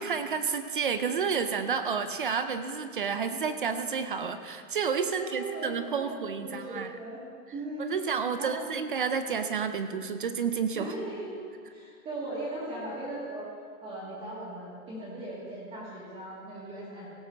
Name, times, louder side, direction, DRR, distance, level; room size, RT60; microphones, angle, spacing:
voice 1, 0.0-7.0 7.8-10.9, right 6 dB, 40° right, 10 dB, 0.4 m, -30 dB
voice 2, 5.1-7.2 7.5-8.0 8.4-8.6 10.7-11.3 11.7-13.5 13.8-17.1, right 1 dB, 15° right, -8 dB, 1.7 m, -38 dB
16.5 x 6.2 x 6.1 m, 2.1 s
hypercardioid pair, 170°, 44 cm